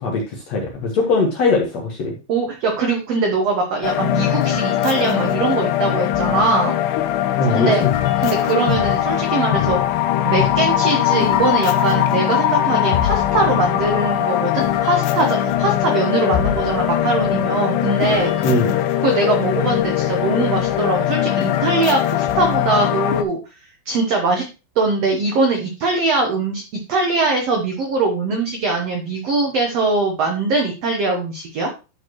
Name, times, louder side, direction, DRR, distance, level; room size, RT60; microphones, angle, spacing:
voice 1, 0.0-2.2 7.4-7.9 18.4-18.8, left 3 dB, 60° left, 0 dB, 1.9 m, -20 dB
voice 2, 2.3-6.8 7.5-7.8 8.2-9.8 10.2-18.4 19.0-23.4 23.8-24.4 24.7-26.6 26.9-31.7, right 3 dB, 80° right, 3 dB, 1.4 m, -21 dB
sound 1, 3.8-23.2, left 11 dB, 90° left, 1.7 m, -20 dB
11.5 x 4.3 x 3.0 m, 0.30 s
omnidirectional pair, 4.3 m